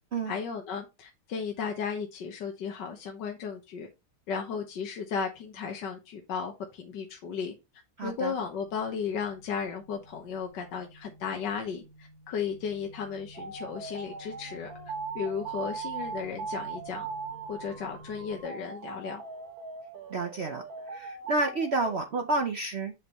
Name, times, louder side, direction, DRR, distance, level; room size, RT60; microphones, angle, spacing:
voice 1, 0.3-3.9 4.3-7.5 8.0-14.7 15.1-17.1 17.5-19.2, left 6 dB, 60° left, 1.6 m, -35 dB
sound 1, 8.0-18.4, equal, 15° right, 2.5 m, -52 dB
voice 2, 8.0-8.3 20.1-22.9, right 3 dB, 85° right, 0.5 m, -30 dB
sound 2, 13.3-22.0, right 5 dB, 50° right, 1.6 m, -39 dB
8.0 x 5.5 x 3.1 m
omnidirectional pair, 2.3 m